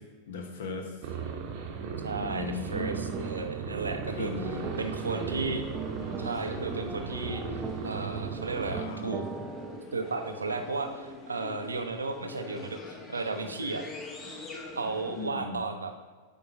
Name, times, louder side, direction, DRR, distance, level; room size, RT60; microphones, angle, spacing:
voice 1, 0.3-1.0 2.1-3.0 4.2-4.7 8.6-9.4 15.1-15.6, left 4 dB, 60° left, 4 dB, 0.9 m, -38 dB
sound 1, 1.0-8.8, right 6 dB, 45° right, 0.8 m, -37 dB
voice 2, 2.0-4.3 4.8-5.7 6.2-7.4 7.8-9.2 9.9-13.8 14.7-15.9, right 3 dB, 75° right, 6 dB, 0.6 m, -34 dB
sound 2, 2.1-9.8, right 6 dB, 20° right, 0.4 m, -41 dB
sound 3, 4.2-15.3, left 2 dB, 25° left, 0.9 m, -44 dB
8.5 x 4.5 x 2.8 m, 1.4 s
figure-of-eight pair, 90°, 0 cm